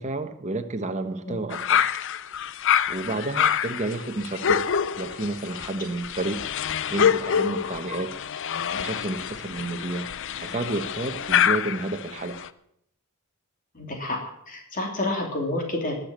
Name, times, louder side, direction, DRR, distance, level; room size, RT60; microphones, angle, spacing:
voice 1, 0.0-1.9 2.9-4.6 4.9-6.5 6.9-8.1 8.7-10.1 10.4-12.4, right 2 dB, 30° right, 7 dB, 1.2 m, -31 dB
sound 1, 1.5-12.5, left 8 dB, 55° left, 0.6 m, -26 dB
voice 2, 13.7-14.2 14.5-16.0, left 2 dB, 40° left, 2 dB, 2.9 m, -29 dB
20.5 x 6.9 x 7.5 m, 0.72 s
head